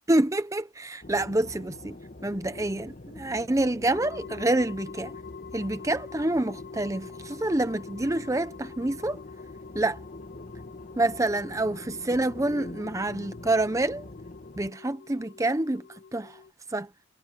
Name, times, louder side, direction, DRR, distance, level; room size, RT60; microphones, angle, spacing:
voice 1, 0.1-2.0 2.2-5.1 5.5-9.2 9.7-10.0 11.0-14.1 14.6-15.8 16.1-16.4 16.7-16.9, right 2 dB, 15° right, 0.6 m, -27 dB
sound 1, 1.0-14.7, left 2 dB, 40° left, 1.4 m, -44 dB
sound 2, 3.9-16.5, left 5 dB, 55° left, 1.8 m, -46 dB
head